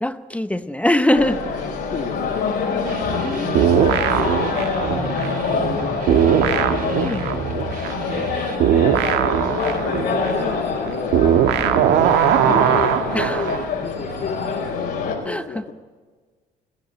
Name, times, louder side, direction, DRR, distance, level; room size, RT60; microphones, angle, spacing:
voice 1, 0.0-1.4 3.2-4.0 7.0-7.3 11.8-11.9 13.1-13.4 15.3-15.6, left 1 dB, 10° left, 11 dB, 0.7 m, -23 dB
sound 1, 1.1-15.2, left 5 dB, 75° left, 4.7 m, -25 dB
voice 2, 1.6-2.5 3.7-4.6 4.9-6.7 7.8-11.2 11.4-11.9 12.3-15.7, left 5 dB, 45° left, 2 dB, 1.7 m, -33 dB
sound 2, 2.8-8.6, right 5 dB, 60° right, 6.3 m, -33 dB
sound 3, 3.5-5.8 6.1-13.7, right 9 dB, 85° right, 1.4 m, -19 dB
21.0 x 15.0 x 8.9 m, 1.4 s
cardioid pair, 110°, 17 cm